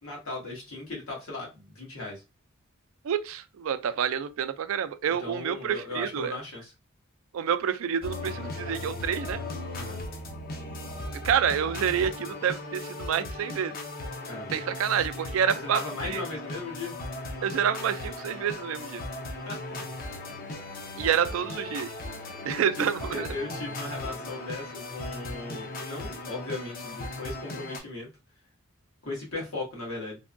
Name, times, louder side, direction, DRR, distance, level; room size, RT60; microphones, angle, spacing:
voice 1, 0.0-2.2 5.2-6.7 9.7-10.0 14.2-14.6 15.5-16.9 19.4-19.6 22.5-28.1 29.0-30.2, left 2 dB, 80° left, 1.5 m, -37 dB
voice 2, 3.0-6.3 7.3-9.4 11.2-13.8 14.5-16.2 17.4-19.0 21.0-21.9 22.4-23.3, right 8 dB, 70° right, 0.3 m, -28 dB
sound 1, 8.0-27.8, left 2 dB, 45° left, 0.6 m, -37 dB
3.4 x 2.2 x 2.5 m
head